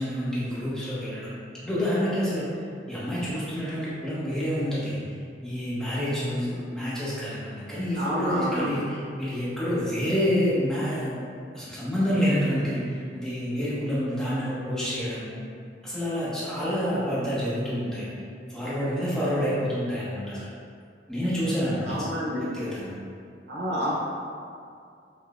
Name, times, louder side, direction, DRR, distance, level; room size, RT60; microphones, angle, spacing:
voice 1, 0.0-1.3 1.6-2.5 2.9-5.0 5.4-11.2 11.5-15.4 15.8-18.1 18.5-20.5 21.1-22.9, equal, 5° left, -11 dB, 0.8 m, -28 dB
voice 2, 8.0-8.8 21.9-22.5 23.5-23.9, equal, 60° right, -5 dB, 0.7 m, -29 dB
5.0 x 2.1 x 2.4 m, 2.4 s
head